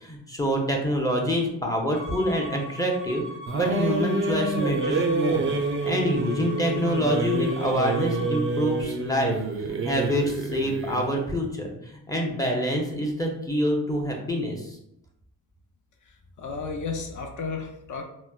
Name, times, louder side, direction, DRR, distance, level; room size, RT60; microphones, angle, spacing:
voice 1, 0.0-3.2 3.5-5.5 5.8-9.3 9.6-14.8, equal, 10° left, 0 dB, 0.6 m, -26 dB
Bowed string instrument, 1.9-8.4, left 1 dB, 35° left, 1.1 m, -40 dB
sound 1, 3.5-11.1, right 3 dB, 35° right, 0.4 m, -28 dB
voice 2, 16.0-18.0, left 4 dB, 50° left, 3 dB, 0.7 m, -33 dB
4.1 x 2.1 x 2.3 m, 0.80 s
cardioid pair, 75°, 39 cm